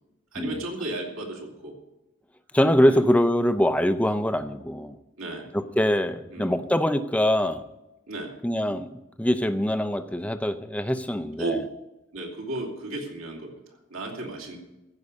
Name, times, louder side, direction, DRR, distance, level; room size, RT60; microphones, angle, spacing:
voice 1, 0.3-1.7 2.8-3.0 5.2-5.5 6.3-6.6 8.1-8.3 11.4-11.6 12.1-14.6, right 2 dB, 75° right, -1 dB, 2.7 m, -34 dB
voice 2, 2.5-5.0 5.5-7.6 8.4-8.9 9.2-11.6, equal, 5° left, 10 dB, 0.5 m, -23 dB
15.0 x 5.3 x 8.4 m, 0.97 s
head